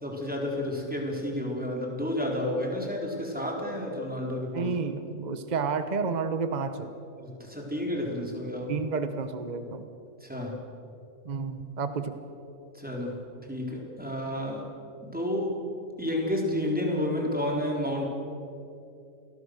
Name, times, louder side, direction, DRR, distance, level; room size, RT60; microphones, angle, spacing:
voice 1, 0.0-4.7 7.2-8.8 10.2-10.6 12.7-13.2 13.5-14.7 15.0-15.6 16.0-18.1, left 1 dB, 5° right, -1 dB, 3.7 m, -31 dB
voice 2, 4.5-6.9 8.7-9.9 11.2-12.1, right 5 dB, 30° right, 9 dB, 1.1 m, -30 dB
28.0 x 20.0 x 6.5 m, 2.7 s
omnidirectional pair, 1.5 m